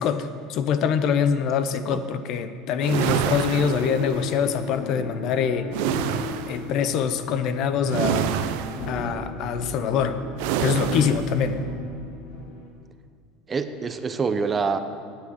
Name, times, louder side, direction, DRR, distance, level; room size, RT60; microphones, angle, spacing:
voice 1, 0.0-5.7 6.4-8.4 8.9-10.2 10.6-11.6, left 7 dB, 50° left, 11 dB, 0.6 m, -24 dB
sound 1, 2.8-4.4 5.7-6.7 7.9-9.0 10.4-11.3, right 9 dB, 75° right, 0.6 m, -27 dB
sound 2, 2.9-12.7, left 3 dB, 90° left, 2.0 m, -38 dB
sound 3, 3.7-11.7, left 1 dB, ahead, 2.0 m, -40 dB
voice 2, 13.5-14.8, right 5 dB, 20° right, 9 dB, 0.6 m, -26 dB
9.9 x 8.3 x 6.4 m, 2.2 s
supercardioid pair, 135°, 0 cm